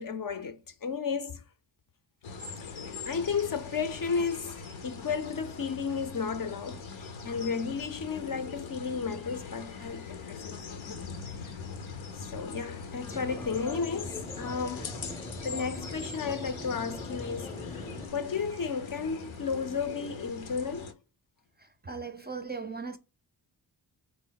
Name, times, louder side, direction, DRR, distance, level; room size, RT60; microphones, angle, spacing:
voice 1, 0.0-1.4 2.6-11.0 11.4-11.5 12.2-15.0 15.4-20.9, left 5 dB, 45° left, 0.6 m, -34 dB
sound 1, 2.2-20.9, left 5 dB, 80° left, 0.9 m, -42 dB
sound 2, 13.1-18.1, left 1 dB, 5° left, 0.7 m, -42 dB
voice 2, 21.8-23.0, right 4 dB, 20° right, 0.4 m, -38 dB
4.2 x 2.0 x 3.8 m
cardioid pair, 60°, 46 cm